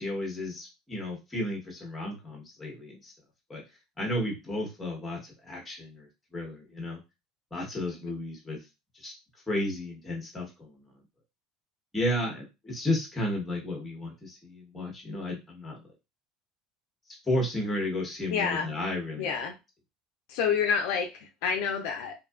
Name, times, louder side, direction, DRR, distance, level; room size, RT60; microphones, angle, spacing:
voice 1, 0.0-3.1 3.5-3.6 4.0-6.1 6.3-7.0 7.5-8.6 9.0-9.1 9.5-10.8 11.9-15.8 17.3-19.3, left 1 dB, 10° left, -1 dB, 1.0 m, -33 dB
voice 2, 18.3-18.7 19.2-19.5 20.3-22.1, left 6 dB, 70° left, 4 dB, 0.4 m, -28 dB
2.7 x 2.2 x 2.3 m, 0.25 s
cardioid pair, 145°, 0 cm